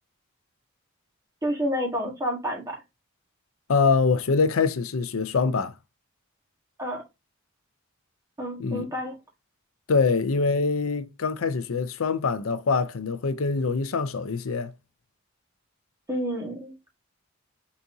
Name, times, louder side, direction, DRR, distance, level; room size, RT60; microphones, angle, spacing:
voice 1, 1.4-2.8 6.8-7.0 8.4-9.2 16.1-16.7, equal, 15° right, 1.8 m, -29 dB
voice 2, 3.7-5.7 8.6-8.9 9.9-14.7, left 4 dB, 75° left, 0.6 m, -24 dB
4.6 x 4.2 x 2.7 m
head